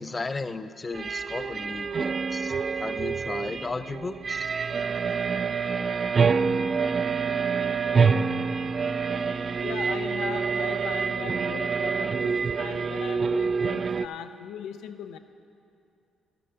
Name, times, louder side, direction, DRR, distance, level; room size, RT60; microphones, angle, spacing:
voice 1, 0.0-4.5, left 3 dB, 25° left, 12 dB, 0.4 m, -35 dB
sound 1, 0.9-14.1, right 5 dB, 40° right, 0.3 m, -26 dB
voice 2, 9.6-15.2, left 9 dB, 90° left, 9 dB, 0.5 m, -39 dB
12.0 x 6.8 x 6.3 m, 2.5 s
cardioid pair, 90°, 0 cm